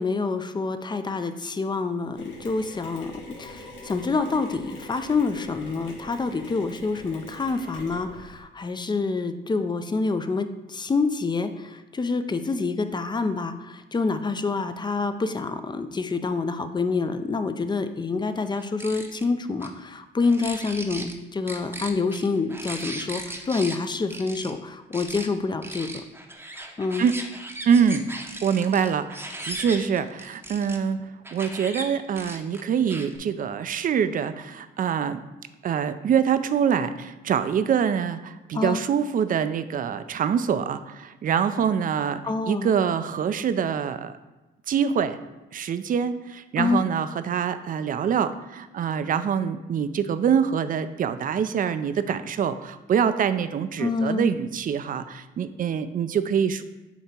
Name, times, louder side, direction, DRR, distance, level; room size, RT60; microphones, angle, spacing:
voice 1, 0.0-3.1 3.4-26.0 26.8-27.0 38.5-38.8 42.2-42.7 46.6-46.8 53.8-54.3, left 4 dB, 20° left, 9 dB, 0.4 m, -27 dB
Mechanisms, 2.2-8.4, left 1 dB, 70° left, 2.0 m, -44 dB
sound 1, 2.6-6.9, left 1 dB, 75° right, 1.1 m, -54 dB
sound 2, 18.6-19.3 19.6-19.7 20.2-21.1 21.5-23.8 24.1-24.5 24.9-25.3 25.6-30.8 31.2-31.8 32.2-33.2, right 1 dB, 10° right, 0.7 m, -37 dB
voice 2, 27.7-28.1 28.4-35.2 35.6-42.2 42.5-44.1 44.7-45.2 45.5-56.6, right 7 dB, 45° right, 11 dB, 0.4 m, -25 dB
8.0 x 2.9 x 4.4 m, 1.1 s
cardioid pair, 90°, 20 cm